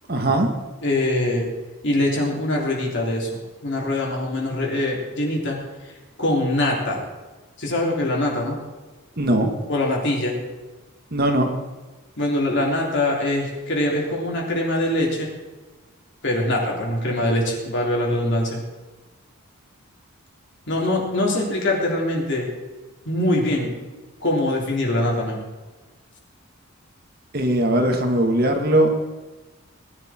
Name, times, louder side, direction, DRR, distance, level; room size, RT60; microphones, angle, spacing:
voice 1, 0.1-0.5 9.2-9.5 11.1-11.5 27.3-28.9, right 1 dB, 45° right, 3 dB, 1.8 m, -19 dB
voice 2, 0.8-1.5 1.8-5.6 5.8-5.9 6.2-7.0 7.6-8.6 9.7-10.3 12.2-15.3 16.2-18.6 20.7-22.5 23.1-23.7 24.2-25.5, left 1 dB, 55° left, -2 dB, 3.6 m, -23 dB
19.5 x 11.0 x 4.4 m, 1.2 s
head